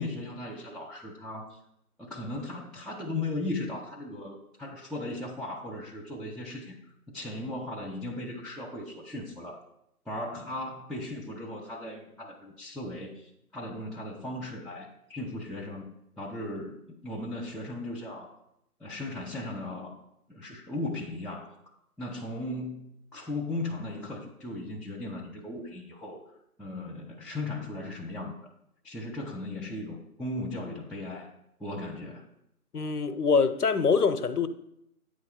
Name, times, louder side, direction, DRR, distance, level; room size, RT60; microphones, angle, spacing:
voice 1, 0.0-1.6 2.0-6.8 7.1-9.6 10.1-18.4 18.8-20.0 20.3-21.6 22.0-26.2 26.6-28.5 28.8-31.3 31.6-32.2, left 2 dB, ahead, 0.4 m, -37 dB
voice 2, 32.7-34.5, left 5 dB, 85° left, 0.7 m, -24 dB
8.7 x 3.2 x 5.6 m
figure-of-eight pair, 165°, 45 cm